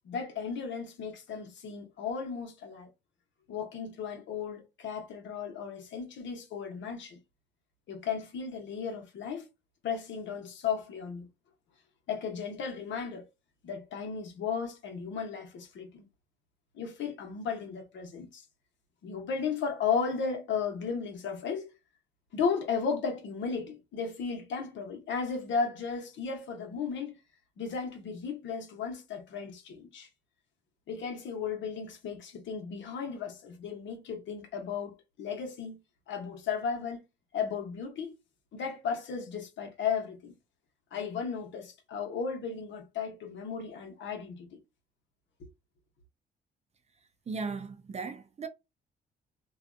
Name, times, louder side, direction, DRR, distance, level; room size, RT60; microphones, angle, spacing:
voice 1, 0.0-2.9 3.5-7.2 7.9-9.5 9.8-11.3 12.1-13.3 13.6-16.0 16.7-18.4 19.0-21.7 22.3-27.2 27.6-30.1 30.9-35.8 36.1-37.0 37.3-38.1 38.5-40.3 40.9-44.5 45.4-45.5, left 6 dB, 70° left, 1.1 m, -35 dB
voice 2, 47.3-48.5, right 4 dB, 35° right, 0.5 m, -37 dB
2.6 x 2.3 x 2.5 m
cardioid pair, 90°, 20 cm